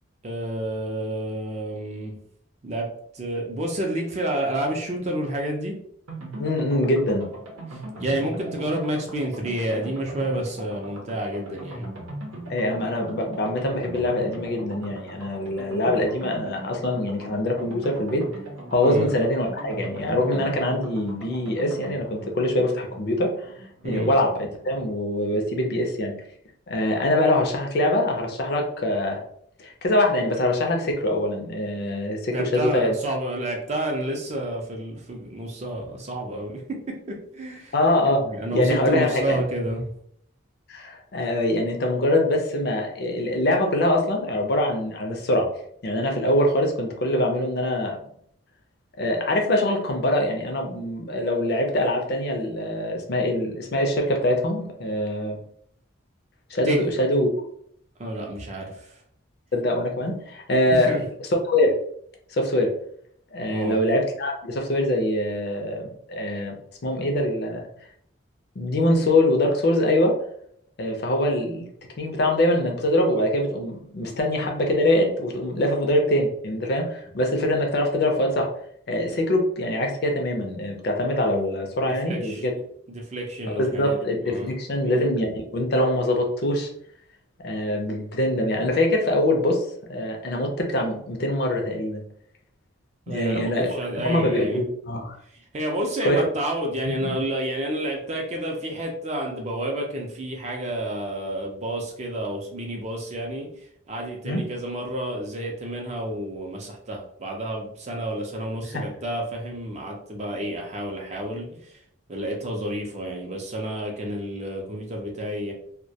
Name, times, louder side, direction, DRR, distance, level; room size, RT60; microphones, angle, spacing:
voice 1, 0.2-2.2 2.6-2.9 3.1-5.8 7.7-11.9 18.8-19.1 23.8-24.1 32.3-37.7 38.2-39.9 56.6-56.9 58.0-59.0 60.7-61.0 63.5-63.8 82.0-82.4 82.9-84.0 84.3-84.5 93.1-94.6 95.5-103.5 103.9-111.8 112.1-115.5, right 1 dB, 35° right, 1 dB, 0.4 m, -30 dB
sound 1, 6.1-24.7 25.0-25.1 25.3-25.4, right 1 dB, 90° right, 0.7 m, -40 dB
voice 2, 6.4-7.3 12.5-18.3 18.7-23.5 23.8-26.1 26.7-29.2 29.6-32.9 37.7-38.2 38.5-39.4 40.7-45.5 45.8-48.0 49.0-55.4 56.5-57.3 59.5-61.7 62.3-62.7 63.3-66.6 66.8-67.7 68.6-70.2 70.8-71.7 72.0-78.5 78.9-82.5 83.6-86.7 87.4-92.0 93.1-93.7 94.0-95.2 96.0-96.3 96.8-97.2 104.2-104.4 108.7-108.8, left 1 dB, 50° left, 2 dB, 0.4 m, -23 dB
2.2 x 2.1 x 2.7 m, 0.67 s
head